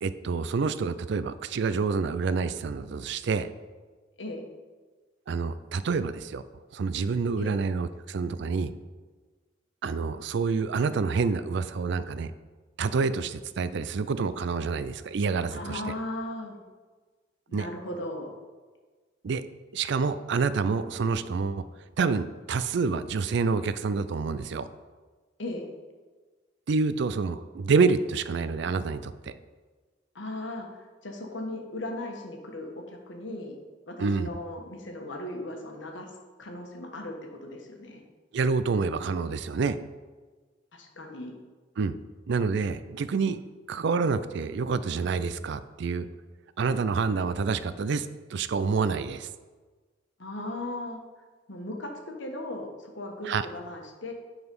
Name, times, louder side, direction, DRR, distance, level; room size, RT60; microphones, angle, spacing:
voice 1, 0.0-3.5 5.3-6.4 6.7-8.7 9.8-12.3 12.8-15.8 17.5-17.7 19.2-19.4 19.7-21.6 22.0-24.7 26.7-29.4 34.0-34.3 38.3-39.8 41.8-42.0 42.3-43.4 43.7-46.1 46.6-49.3 53.3-53.4, right 4 dB, 65° right, 13 dB, 0.4 m, -27 dB
voice 2, 15.5-16.6 17.5-18.3 25.4-25.7 30.1-33.6 33.9-36.1 36.4-38.0 40.7-41.3 50.2-51.0 51.5-54.1, left 1 dB, 70° left, 2 dB, 1.3 m, -37 dB
9.5 x 4.0 x 5.3 m, 1.4 s
head